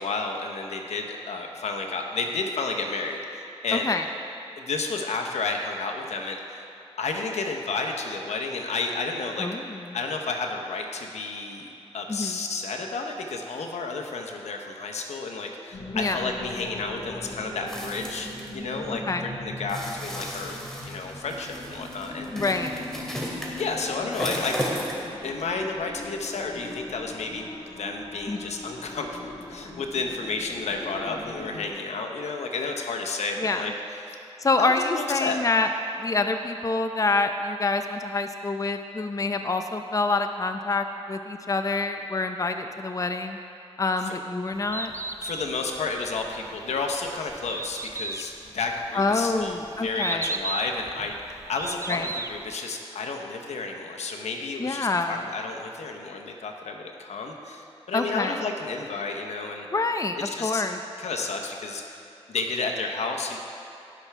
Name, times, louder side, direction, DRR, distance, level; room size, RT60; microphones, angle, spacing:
voice 1, 0.0-3.9 4.6-6.7 7.0-9.5 9.9-18.3 18.5-22.3 23.1-23.2 23.6-24.6 25.2-27.5 27.8-34.2 34.6-35.4 44.0-44.1 45.2-59.7 60.1-60.6 61.0-62.0 62.3-63.4, left 3 dB, 85° left, 3 dB, 0.9 m, -31 dB
voice 2, 3.7-4.0 9.4-9.8 12.1-12.4 15.9-16.2 18.9-19.3 22.3-22.7 28.3-28.4 33.4-33.7 34.4-35.7 36.0-43.4 43.8-44.9 48.9-50.3 51.9-52.1 54.6-55.2 57.9-58.4 59.7-60.8, left 3 dB, 30° left, 6 dB, 0.6 m, -26 dB
sound 1, 15.7-31.7, left 2 dB, 50° left, 1.5 m, -40 dB
sound 2, 17.7-18.5 19.7-25.1 25.4-25.5, equal, 5° left, 2.3 m, -34 dB
Bird, 44.5-52.5, right 3 dB, 25° right, 0.5 m, -35 dB
17.5 x 6.0 x 3.4 m, 2.9 s
cardioid pair, 50°, 11 cm